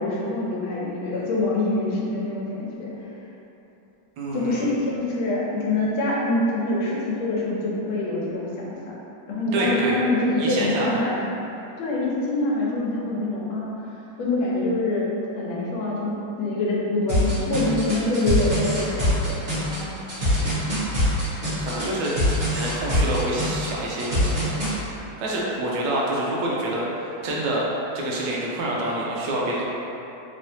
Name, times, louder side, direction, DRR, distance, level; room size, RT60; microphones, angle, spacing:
voice 1, 0.0-2.9 4.3-8.9 9.3-11.2 11.8-13.8 14.2-15.1 15.3-16.1 16.4-19.9, left 2 dB, 85° left, -5 dB, 1.5 m, -25 dB
voice 2, 4.2-4.7 9.5-10.0 10.4-11.0 20.4-20.8 21.6-27.7 27.9-29.6, right 1 dB, 75° right, -4 dB, 1.2 m, -27 dB
sound 1, 17.1-24.7, left 1 dB, 35° right, 1.3 m, -23 dB
3.6 x 3.3 x 2.7 m, 3.0 s
omnidirectional pair, 2.2 m